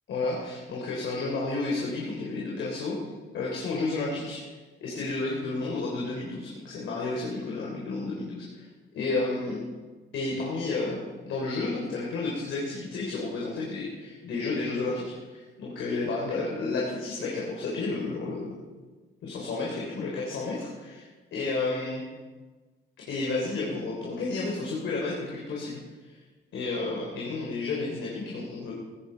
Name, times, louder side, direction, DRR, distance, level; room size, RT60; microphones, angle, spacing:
voice 1, 0.1-3.0 3.3-4.4 4.8-8.7 8.9-9.6 10.1-18.5 19.2-22.0 23.1-26.2 26.5-28.7, left 3 dB, 75° left, -3 dB, 3.4 m, -31 dB
17.0 x 14.5 x 4.5 m, 1.3 s
cardioid pair, 90°, 20 cm